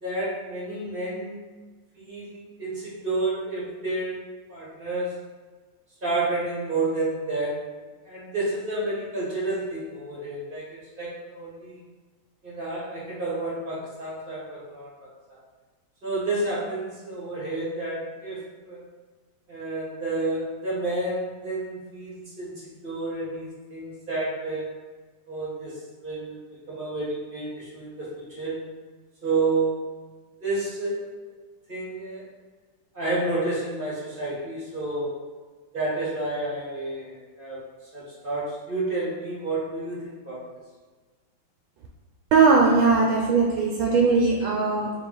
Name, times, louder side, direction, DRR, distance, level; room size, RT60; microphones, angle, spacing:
voice 1, 0.0-1.4 1.9-4.2 4.5-5.2 6.0-7.8 8.0-11.8 12.4-14.9 15.3-15.4 16.0-18.8 19.5-24.7 25.3-26.4 26.7-28.6 29.2-29.8 30.4-31.3 31.7-32.2 32.9-35.1 35.7-37.6 37.9-40.5, right 2 dB, 35° right, -8 dB, 0.9 m, -30 dB
voice 2, 42.3-44.9, right 4 dB, 80° right, -2 dB, 1.4 m, -19 dB
4.0 x 2.9 x 3.8 m, 1.3 s
omnidirectional pair, 2.3 m